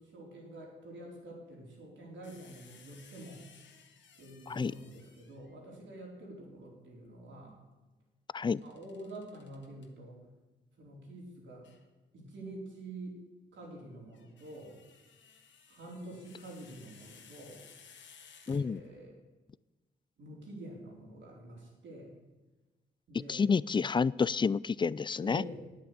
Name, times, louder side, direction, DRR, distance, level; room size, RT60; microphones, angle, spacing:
voice 1, 0.0-3.4 4.2-7.5 8.6-10.2 10.8-11.6 12.1-13.2 13.5-14.8 15.7-17.7 18.5-19.2 20.2-22.1 23.1-23.4 25.2-25.7, right 1 dB, 80° right, -1 dB, 4.2 m, -47 dB
sound 1, 2.2-5.5 8.4-9.9 11.6-11.8 13.9-19.1, left 6 dB, 80° left, 1.6 m, -59 dB
voice 2, 18.5-18.8 23.3-25.4, left 5 dB, 25° left, 22 dB, 0.3 m, -29 dB
10.5 x 9.1 x 8.2 m, 1.2 s
cardioid pair, 60°, 19 cm